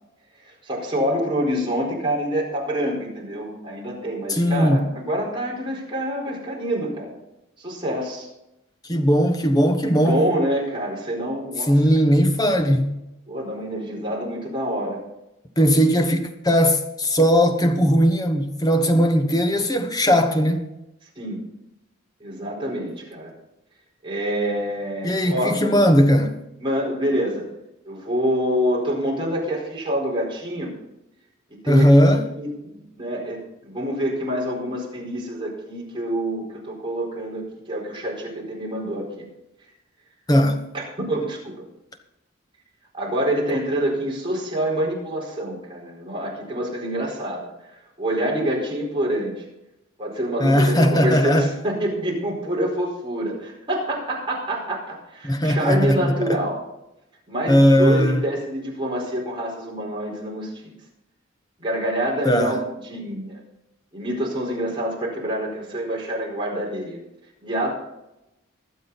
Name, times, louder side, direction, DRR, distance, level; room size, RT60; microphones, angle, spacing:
voice 1, 0.4-7.1 7.6-8.3 9.9-11.8 13.3-15.0 21.2-21.4 22.2-23.3 24.0-25.6 26.6-27.5 27.8-30.7 31.5-39.2 40.7-41.6 42.9-49.4 50.0-56.6 57.3-60.8 61.6-63.4 63.9-67.0 67.4-67.7, equal, 25° right, 4.5 m, -26 dB
voice 2, 4.3-4.9 8.9-10.2 11.7-13.0 15.6-20.7 25.0-26.4 31.7-32.2 40.3-40.6 50.4-51.5 55.2-56.4 57.5-58.2 62.2-62.6, equal, 20° left, 1.2 m, -18 dB
22.0 x 7.7 x 4.1 m
head